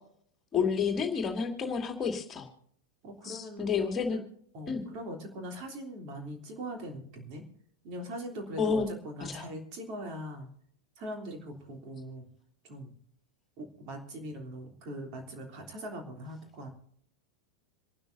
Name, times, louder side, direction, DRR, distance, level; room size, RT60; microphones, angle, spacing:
voice 1, 0.5-2.5 3.2-4.2 4.7-4.8 8.6-8.9 9.2-9.4, left 6 dB, 25° left, 4 dB, 2.4 m, -30 dB
voice 2, 3.0-3.7 4.1-4.2 4.5-7.4 7.8-10.5 11.0-12.3 12.6-12.9 13.6-16.7, equal, 40° right, 2 dB, 3.3 m, -41 dB
27.5 x 12.5 x 2.7 m, 0.63 s
figure-of-eight pair, 90°, 0 cm